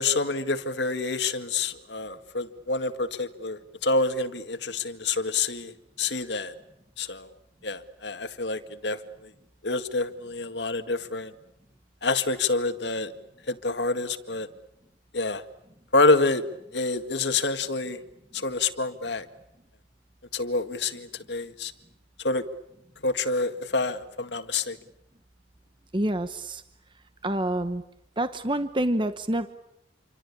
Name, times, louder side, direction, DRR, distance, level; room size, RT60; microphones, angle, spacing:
voice 1, 0.0-5.7 6.0-6.5 7.0-7.3 7.6-9.0 9.6-11.3 12.0-13.1 13.5-14.5 15.1-15.4 15.9-16.4 16.7-18.0 18.3-19.3 20.3-21.7 22.2-22.4 23.0-24.8, left 3 dB, 70° left, 8 dB, 2.0 m, -27 dB
voice 2, 25.9-26.6 27.2-27.8 28.2-29.5, right 1 dB, 25° right, 10 dB, 1.1 m, -27 dB
28.5 x 24.5 x 8.6 m, 0.82 s
head